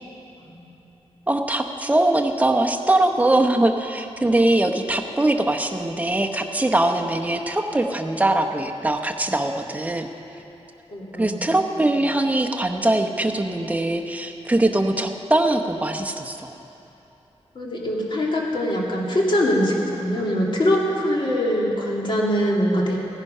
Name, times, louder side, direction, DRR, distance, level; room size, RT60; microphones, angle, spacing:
voice 1, 1.3-10.1 11.2-16.5, right 1 dB, 15° right, 3 dB, 0.8 m, -22 dB
voice 2, 10.9-11.5 17.5-23.0, equal, 50° left, -3 dB, 2.3 m, -23 dB
16.0 x 10.5 x 5.5 m, 2.9 s
wide cardioid pair, 120°, 11 cm